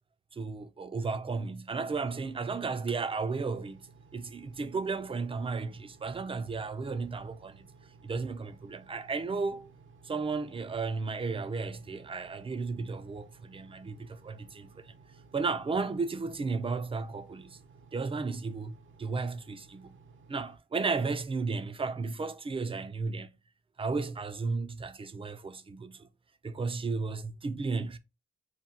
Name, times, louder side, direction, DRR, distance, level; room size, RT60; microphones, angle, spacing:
voice 1, 0.3-3.8 4.1-7.6 8.0-9.7 10.0-14.9 15.3-17.6 17.9-19.9 20.3-23.3 23.8-26.1 26.4-28.0, right 4 dB, 25° right, 0.5 m, -34 dB
Engine, 1.7-20.6, right 4 dB, 65° right, 0.8 m, -57 dB
4.4 x 2.3 x 3.7 m
cardioid pair, 75°, 21 cm